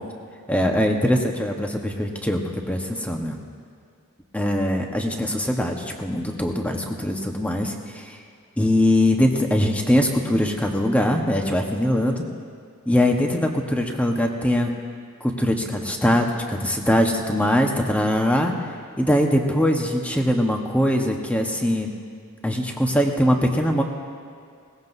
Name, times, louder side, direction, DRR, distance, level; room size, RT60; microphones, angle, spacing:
voice 1, 0.5-2.4 2.7-3.4 4.3-8.2 8.6-12.2 12.8-14.8 15.2-18.5 19.0-21.9 22.4-23.8, left 1 dB, 5° left, 2 dB, 1.2 m, -22 dB
21.0 x 18.5 x 2.7 m, 2.3 s
head